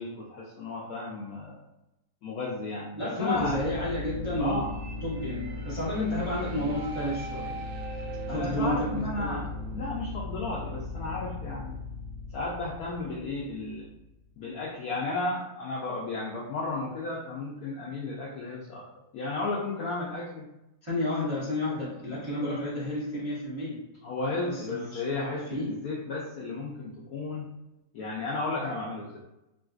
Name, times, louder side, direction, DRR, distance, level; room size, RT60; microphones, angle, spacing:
voice 1, 0.0-1.6 2.2-3.6 4.4-4.7 8.3-11.8 12.3-13.9 14.4-20.5 22.4-22.6 24.0-27.4 27.9-29.2, left 3 dB, 75° left, -4 dB, 0.8 m, -34 dB
voice 2, 2.9-4.6 5.0-7.6 8.3-9.5 20.8-23.8 24.4-25.7, left 1 dB, 35° right, -9 dB, 0.4 m, -31 dB
sound 1, 3.3-14.2, left 2 dB, 75° right, 1.3 m, -37 dB
3.7 x 2.5 x 2.4 m, 0.92 s
omnidirectional pair, 2.1 m